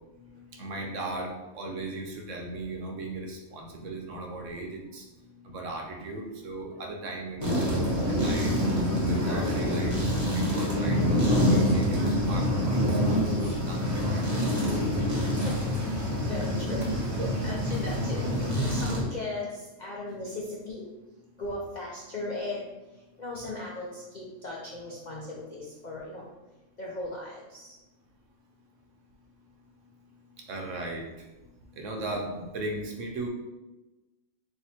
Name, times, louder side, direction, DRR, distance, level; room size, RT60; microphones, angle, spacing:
voice 1, 0.5-5.1 5.4-8.6 9.0-14.7 16.7-16.8 17.2-17.3 18.2-18.3 30.5-31.3 31.7-33.3, right 2 dB, 65° right, 1 dB, 0.9 m, -37 dB
sound 1, 7.4-19.0, equal, 15° right, 0.8 m, -26 dB
voice 2, 15.9-16.9 17.4-20.8 21.4-22.7 23.2-26.3 26.8-27.7, left 2 dB, 55° left, -5 dB, 0.5 m, -37 dB
3.4 x 2.8 x 4.2 m, 1.1 s
omnidirectional pair, 1.5 m